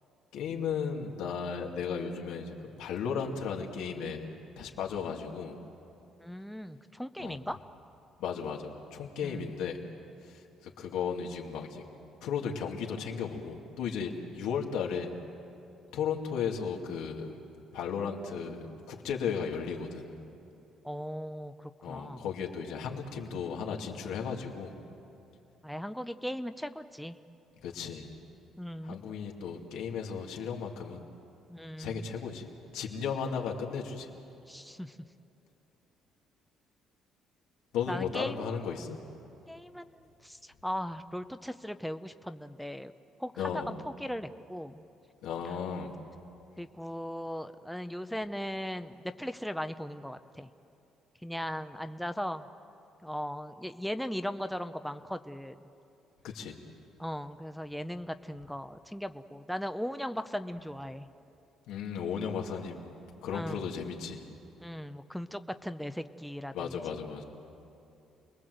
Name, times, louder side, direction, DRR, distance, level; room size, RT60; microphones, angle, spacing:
voice 1, 0.3-4.3 4.6-5.6 7.2-7.4 8.2-9.8 10.3-11.8 12.2-15.2 15.9-17.3 17.7-20.1 21.8-24.7 27.6-28.1 28.8-31.0 31.8-34.1 37.7-39.0 43.4-43.7 45.2-45.9 56.2-56.6 61.7-62.8 63.2-64.3 66.5-67.2, left 6 dB, 90° left, 1 dB, 2.5 m, -35 dB
voice 2, 6.2-7.6 9.2-9.6 20.8-22.2 25.6-27.2 28.6-29.0 31.5-32.0 34.5-35.0 37.9-38.6 39.5-42.9 43.2-44.8 46.6-50.5 51.2-52.5 53.0-55.6 57.0-61.1 63.3-63.7 64.6-66.8, equal, ahead, 9 dB, 0.6 m, -38 dB
28.5 x 21.0 x 7.9 m, 2.8 s
cardioid pair, 125°, 0 cm